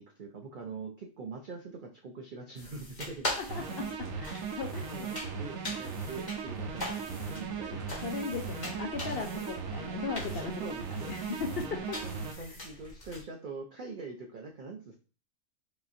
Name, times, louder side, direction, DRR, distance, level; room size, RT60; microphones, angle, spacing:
voice 1, 0.0-3.5 4.9-7.9 9.4-9.5 10.4-11.1 12.0-15.0, right 4 dB, 60° right, 2 dB, 0.5 m, -43 dB
sound 1, 2.6-13.2, left 1 dB, 35° left, 1.1 m, -42 dB
voice 2, 3.4-4.9 7.7-10.6 11.1-12.0 12.4-12.5, left 5 dB, 60° left, 4 dB, 0.6 m, -38 dB
sound 2, 3.5-12.3, right 5 dB, 90° right, 1.1 m, -38 dB
4.8 x 2.8 x 2.5 m, 0.38 s
omnidirectional pair, 1.4 m